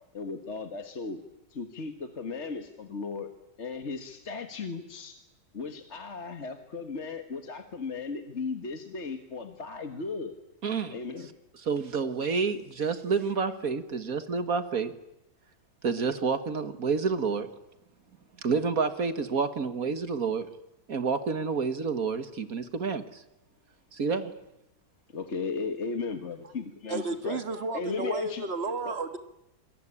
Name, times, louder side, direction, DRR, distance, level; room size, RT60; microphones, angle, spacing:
voice 1, 0.1-1.2 1.5-3.3 3.6-5.2 5.5-10.3 10.9-11.3 25.1-27.4 27.7-28.5 28.9-29.0, left 4 dB, 40° left, 6 dB, 1.8 m, -36 dB
voice 2, 10.6-11.0 11.5-14.9 15.8-17.5 18.4-20.5 20.9-23.2 23.9-24.3, right 5 dB, 55° right, 10 dB, 1.9 m, -29 dB
voice 3, 26.9-29.2, right 3 dB, 35° right, 8 dB, 1.9 m, -32 dB
27.5 x 22.0 x 9.9 m, 0.88 s
omnidirectional pair, 1.9 m